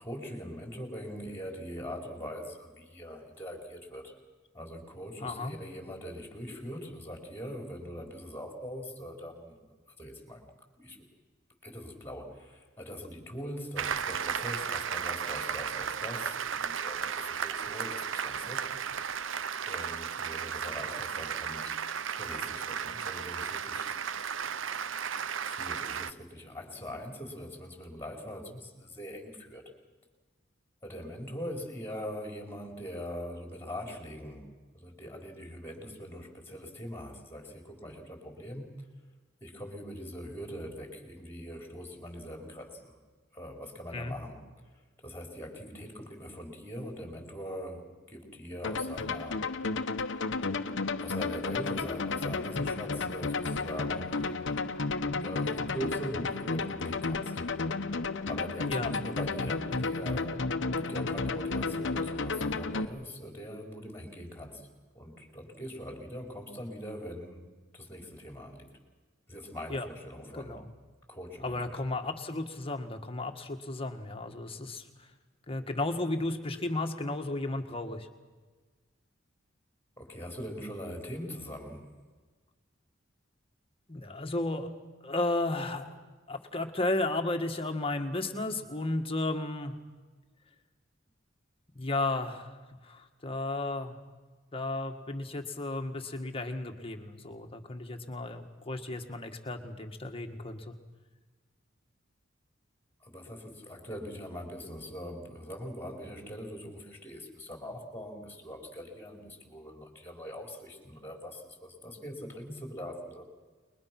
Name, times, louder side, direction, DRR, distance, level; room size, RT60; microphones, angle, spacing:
voice 1, 0.0-4.2 4.5-10.5 10.8-11.0 11.6-18.9 19.7-21.8 22.2-23.9 25.4-29.7 30.8-34.4 34.7-38.7 39.4-43.0 43.3-44.4 45.0-49.5 51.0-54.6 55.2-57.4 58.3-60.5 60.8-64.7 64.9-67.4 67.7-68.7 69.3-70.7 71.1-71.9 80.0-81.9 103.0-113.2, equal, 10° left, 2 dB, 4.4 m, -42 dB
voice 2, 5.2-5.6 43.9-44.2 58.7-58.9 69.7-69.9 70.3-70.6 71.4-74.8 75.5-78.1 83.9-84.7 85.0-85.9 86.3-89.8 91.7-92.6 92.8-94.0 94.5-100.8, left 2 dB, 30° left, 5 dB, 1.9 m, -33 dB
Applause, 13.8-26.1, right 7 dB, 75° right, 0.7 m, -34 dB
sound 1, 48.6-62.8, left 3 dB, 65° left, 1.0 m, -32 dB
29.5 x 22.0 x 6.2 m, 1.3 s
head